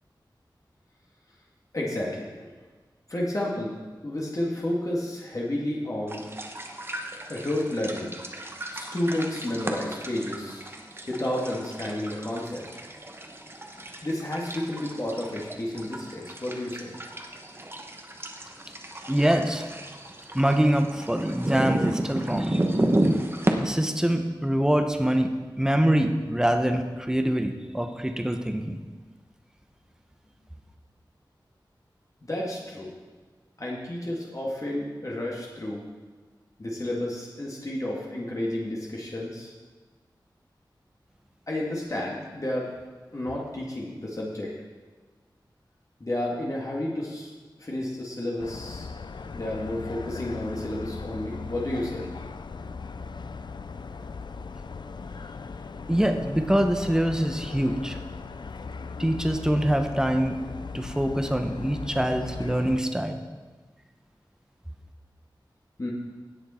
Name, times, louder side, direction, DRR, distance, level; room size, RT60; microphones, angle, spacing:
voice 1, 1.7-2.5 3.1-3.8 4.0-6.3 7.3-8.1 8.7-10.6 11.1-12.8 14.0-17.0 32.3-32.9 33.6-35.8 36.6-39.5 41.5-42.7 43.1-44.5 46.0-47.3 47.6-48.9 49.3-52.1 65.8-65.9, left 1 dB, 45° left, -4 dB, 2.0 m, -31 dB
sound 1, 6.1-23.5, right 1 dB, 30° right, 1.1 m, -32 dB
voice 2, 19.1-19.6 20.3-22.6 23.6-25.3 25.6-28.8 55.9-58.0 59.0-60.4 60.7-63.2, right 1 dB, 10° right, 6 dB, 0.9 m, -24 dB
sound 2, 48.4-62.8, left 4 dB, 65° left, 0.4 m, -38 dB
17.0 x 6.5 x 4.4 m, 1.4 s
wide cardioid pair, 75°, 8 cm